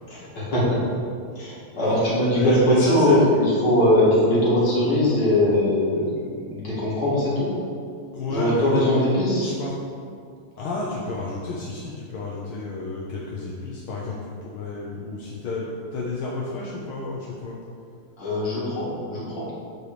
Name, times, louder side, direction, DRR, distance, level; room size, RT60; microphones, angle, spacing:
voice 1, 0.1-0.8 1.4-2.5 2.9-7.5 8.3-9.5 18.2-19.5, left 1 dB, 55° left, -7 dB, 2.8 m, -21 dB
voice 2, 2.3-3.2 8.1-8.8 9.4-9.8 10.6-17.6, left 2 dB, 80° left, -5 dB, 1.8 m, -29 dB
9.7 x 3.2 x 6.7 m, 2.3 s
omnidirectional pair, 2.3 m